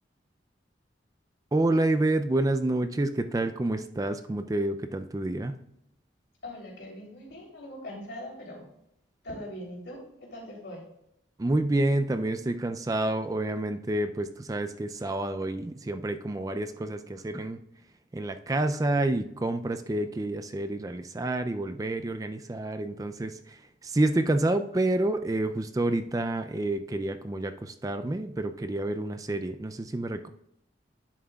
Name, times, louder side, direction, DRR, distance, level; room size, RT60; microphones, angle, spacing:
voice 1, 1.5-5.6 11.4-17.6 18.1-30.3, right 2 dB, 20° right, 9 dB, 0.3 m, -28 dB
voice 2, 6.4-8.6 9.2-10.8, left 1 dB, 80° left, -3 dB, 3.3 m, -41 dB
10.5 x 7.5 x 2.3 m, 0.79 s
head